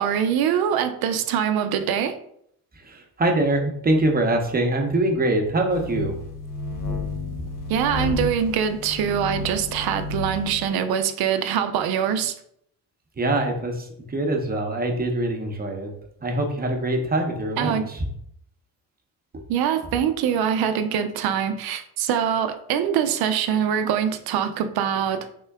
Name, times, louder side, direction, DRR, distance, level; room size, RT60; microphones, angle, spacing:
voice 1, 0.0-2.2 7.7-12.3 17.6-17.9 19.5-25.4, right 8 dB, 70° right, 10 dB, 0.5 m, -24 dB
voice 2, 2.8-6.2 13.2-15.9 16.2-18.1, right 1 dB, 25° right, 2 dB, 0.8 m, -24 dB
sound 1, 5.7-10.7, left 2 dB, 55° left, 0.8 m, -31 dB
3.7 x 2.1 x 3.4 m, 0.70 s
supercardioid pair, 75°, 38 cm